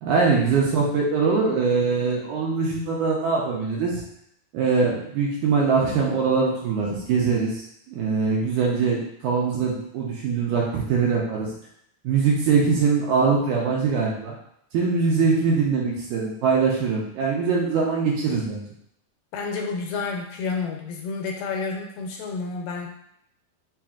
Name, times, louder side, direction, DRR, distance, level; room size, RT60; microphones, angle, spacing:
voice 1, 0.0-4.0 4.5-7.5 7.9-11.5 12.0-14.4 14.7-18.6, right 5 dB, 75° right, -3 dB, 2.0 m, -22 dB
voice 2, 19.3-22.9, left 4 dB, 80° left, 1 dB, 2.2 m, -30 dB
5.6 x 2.5 x 2.4 m, 0.72 s
omnidirectional pair, 3.9 m